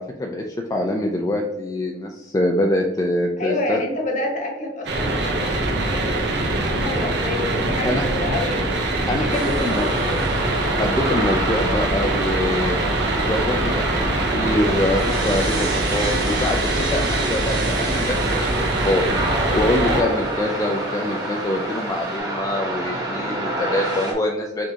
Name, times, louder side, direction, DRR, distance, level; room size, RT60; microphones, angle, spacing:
voice 1, 0.0-3.8 7.8-8.1 9.1-9.9 10.7-12.8 13.1-18.5 18.8-19.0 19.5-24.7, left 1 dB, 20° left, 2 dB, 0.3 m, -24 dB
voice 2, 3.4-8.6 9.2-10.2 19.8-20.2, left 2 dB, 45° left, 0 dB, 1.1 m, -28 dB
sound 1, 4.9-20.0, right 2 dB, 65° right, 0.8 m, -23 dB
sound 2, 9.3-24.1, right 1 dB, 20° right, 1.1 m, -28 dB
sound 3, 14.2-22.2, right 1 dB, ahead, 0.8 m, -43 dB
4.9 x 3.6 x 2.8 m, 0.98 s
head